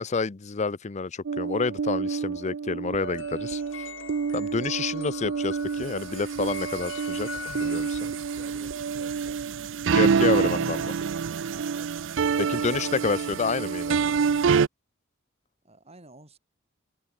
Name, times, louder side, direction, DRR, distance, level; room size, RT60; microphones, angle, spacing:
voice 1, 0.0-3.9 4.3-7.9 9.9-10.9 12.4-14.0, left 4 dB, 35° left, 0.6 m, -29 dB
sound 1, 1.2-14.7, right 6 dB, 70° right, 0.4 m, -27 dB
sound 2, 3.0-10.2, left 6 dB, 70° left, 1.3 m, -44 dB
voice 2, 7.6-9.5 11.5-12.6 15.6-16.4, right 1 dB, 30° right, 6.4 m, -53 dB
head